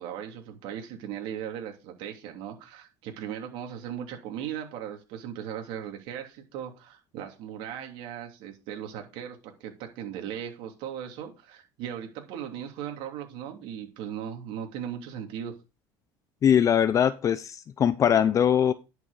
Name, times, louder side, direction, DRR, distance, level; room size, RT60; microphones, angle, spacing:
voice 1, 0.0-15.5, right 9 dB, 70° right, 2.9 m, -38 dB
voice 2, 16.4-18.7, left 9 dB, 35° left, 0.6 m, -21 dB
11.0 x 6.2 x 4.1 m
supercardioid pair, 115°, 9 cm